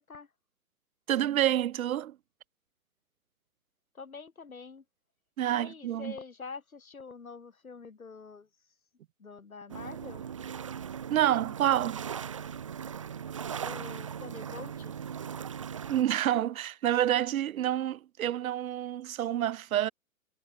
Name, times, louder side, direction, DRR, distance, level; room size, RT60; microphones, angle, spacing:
voice 1, 1.1-2.2 5.4-6.2 11.1-12.1 15.9-19.9, right 11 dB, 85° right, 0.5 m, -28 dB
voice 2, 3.9-4.8 5.5-8.5 9.2-10.2 13.6-15.0, left 5 dB, 85° left, 6.1 m, -45 dB
sound 1, 9.7-16.0, right 8 dB, 25° right, 0.4 m, -39 dB
hypercardioid pair, 135°, 41 cm